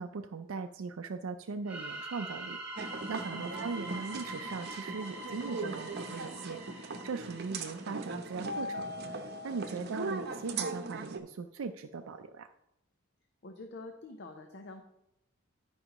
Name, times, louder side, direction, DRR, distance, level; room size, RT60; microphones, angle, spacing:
voice 1, 0.0-8.9 9.1-12.5, right 4 dB, 80° right, 6 dB, 0.4 m, -40 dB
sound 1, 1.7-8.3, right 2 dB, 5° right, 2.0 m, -44 dB
sound 2, 2.8-11.2, right 3 dB, 55° right, 0.8 m, -39 dB
voice 2, 13.4-14.8, left 2 dB, 55° left, 5 dB, 0.7 m, -46 dB
12.5 x 5.4 x 3.0 m, 0.87 s
head